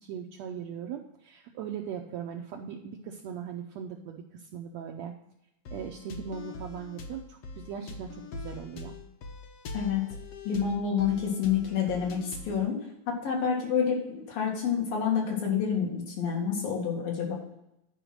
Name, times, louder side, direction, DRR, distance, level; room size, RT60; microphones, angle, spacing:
voice 1, 0.0-5.1 5.7-9.0, right 7 dB, 90° right, 2 dB, 1.5 m, -39 dB
sound 1, 5.7-12.6, left 3 dB, 65° left, 1.6 m, -43 dB
voice 2, 10.5-12.8 13.1-14.0 14.3-17.3, left 7 dB, 85° left, -1 dB, 3.9 m, -28 dB
10.5 x 5.0 x 6.1 m, 0.84 s
omnidirectional pair, 3.9 m